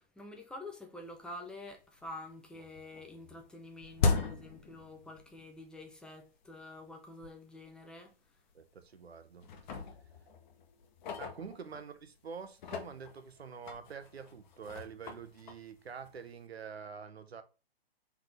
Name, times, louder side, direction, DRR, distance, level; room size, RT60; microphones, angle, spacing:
voice 1, 0.0-8.2, left 2 dB, 5° left, 0.5 m, -48 dB
sound 1, 1.2-1.3 1.7-2.3 2.5-5.5 5.8-5.9 6.6-6.7 7.2-7.3 7.7-7.8 8.5-9.1 9.4-12.0 12.5-16.4, left 4 dB, 50° left, 1.0 m, -38 dB
voice 2, 8.5-9.5 11.2-17.4, right 6 dB, 85° right, 0.8 m, -46 dB
3.8 x 3.5 x 3.2 m
hypercardioid pair, 125°, 31 cm